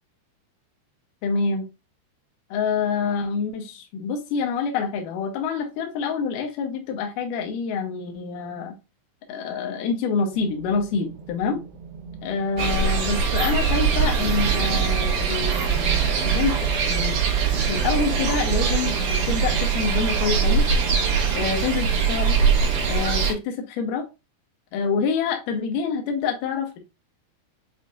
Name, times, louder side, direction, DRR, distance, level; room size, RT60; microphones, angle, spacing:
voice 1, 1.2-1.7 2.5-8.8 9.3-11.6 12.2-17.2 17.5-20.6 21.3-22.4 22.9-24.1 24.7-26.8, left 5 dB, 85° left, 3 dB, 1.8 m, -27 dB
sound 1, 10.3-22.0, right 5 dB, 90° right, 2.8 m, -41 dB
sound 2, 12.6-23.3, right 6 dB, 70° right, 1.6 m, -22 dB
6.9 x 2.6 x 2.4 m, 0.26 s
omnidirectional pair, 4.7 m